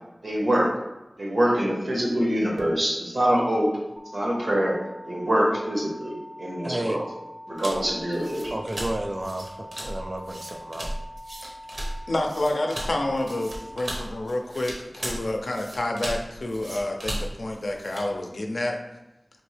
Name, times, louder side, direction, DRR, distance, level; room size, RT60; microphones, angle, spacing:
voice 1, 0.2-0.7 1.2-3.7 4.1-4.8 5.0-7.0 7.5-8.5, equal, 90° right, -3 dB, 1.1 m, -24 dB
sound 1, 4.0-14.0, equal, 25° left, 0.5 m, -43 dB
voice 2, 6.6-7.0 8.5-10.9, right 1 dB, 40° right, 5 dB, 0.3 m, -32 dB
sound 2, 7.6-18.1, right 1 dB, 70° right, 0.8 m, -36 dB
voice 3, 12.1-18.8, left 1 dB, 85° left, 3 dB, 0.4 m, -29 dB
3.5 x 3.0 x 3.2 m, 1.0 s
wide cardioid pair, 55°, 0 cm